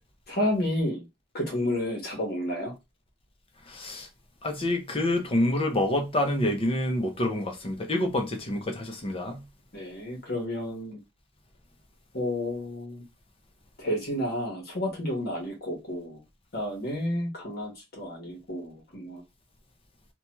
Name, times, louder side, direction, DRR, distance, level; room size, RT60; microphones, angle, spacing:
voice 1, 0.3-1.0 1.3-2.7 9.7-11.0 12.1-13.0 13.8-16.2 16.5-19.2, left 1 dB, 45° left, 1.2 m, -31 dB
voice 2, 3.7-4.1 4.4-9.4, left 1 dB, 25° left, 0.6 m, -27 dB
2.9 x 2.2 x 2.9 m
head